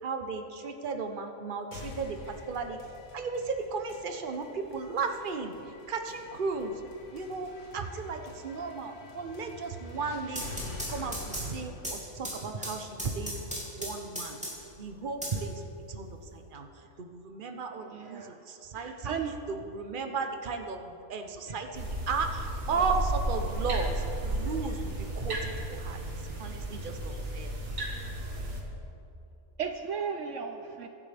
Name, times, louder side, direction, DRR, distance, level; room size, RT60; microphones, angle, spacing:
voice 1, 0.0-2.8 3.1-5.5 5.9-6.8 7.1-13.3 13.7-14.4 14.8-15.6 15.9-19.2 19.5-26.0 26.4-27.5, right 4 dB, 40° right, 5 dB, 1.1 m, -35 dB
sound 1, 1.7-13.7, left 3 dB, 65° left, 1.7 m, -47 dB
sound 2, 10.1-14.8 15.2-16.2, equal, 5° right, 2.8 m, -38 dB
voice 2, 17.8-18.4 18.7-19.3 29.6-30.9, right 6 dB, 65° right, 5 dB, 1.0 m, -35 dB
sound 3, 21.7-28.6, right 1 dB, 85° right, 2.4 m, -33 dB
23.0 x 11.0 x 3.5 m, 2.9 s
omnidirectional pair, 1.4 m